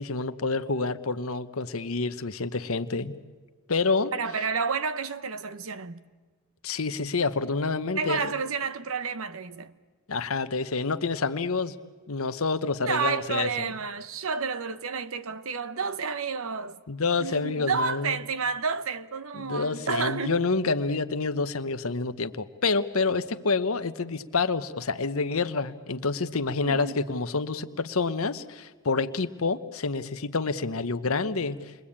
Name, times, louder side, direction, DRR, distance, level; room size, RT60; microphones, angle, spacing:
voice 1, 0.0-3.1 3.7-4.1 6.6-8.3 10.1-11.7 12.1-13.7 16.9-18.2 19.3-31.6, left 4 dB, 75° left, 1.0 m, -28 dB
voice 2, 4.1-6.0 8.0-9.7 12.8-16.8 17.2-20.4 26.6-27.0, right 5 dB, 70° right, 0.9 m, -30 dB
29.0 x 22.0 x 8.7 m
head